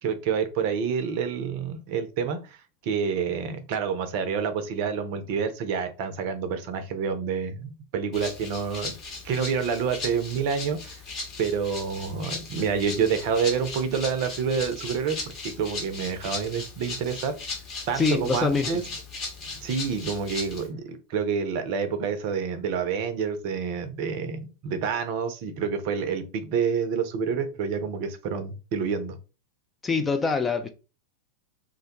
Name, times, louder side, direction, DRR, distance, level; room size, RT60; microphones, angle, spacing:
voice 1, 0.0-2.6 2.8-9.0 9.2-11.0 11.4-15.2 15.4-17.4 17.9-18.8 19.6-29.2, right 6 dB, 45° right, 0.5 m, -28 dB
Rattle (instrument), 8.1-20.7, left 3 dB, 35° left, 0.9 m, -37 dB
voice 2, 18.0-18.7 29.8-30.7, left 4 dB, 15° left, 0.3 m, -24 dB
2.2 x 2.1 x 2.8 m
figure-of-eight pair, 90°, 0 cm